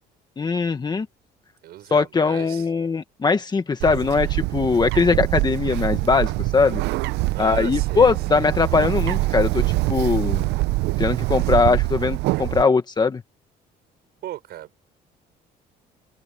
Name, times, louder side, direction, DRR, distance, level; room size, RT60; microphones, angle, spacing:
voice 1, 0.4-1.1 1.9-6.8 7.4-10.5 11.0-13.2, left 4 dB, 25° left, 1.4 m, -21 dB
voice 2, 1.6-2.7 7.3-8.5 9.9-10.2 14.2-14.8, right 13 dB, 70° right, 5.9 m, -37 dB
Bird, 3.8-12.6, right 20 dB, 90° right, 0.6 m, -24 dB
cardioid pair, 110°, 17 cm